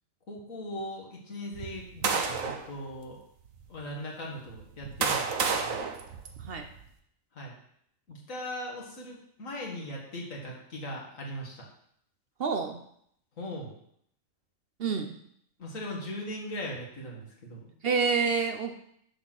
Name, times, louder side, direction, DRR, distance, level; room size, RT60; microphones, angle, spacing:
voice 1, 0.3-3.2 3.7-5.8 7.3-7.6 8.1-11.7 13.4-13.7 15.6-17.7, left 1 dB, 75° left, -2 dB, 2.3 m, -39 dB
sound 1, 1.5-2.7 3.5-3.6 4.5-6.8, right 5 dB, 80° right, 1.3 m, -31 dB
voice 2, 12.4-12.8 14.8-15.2 17.8-18.8, right 5 dB, 55° right, 6 dB, 0.8 m, -28 dB
9.2 x 4.2 x 6.3 m, 0.69 s
omnidirectional pair, 1.4 m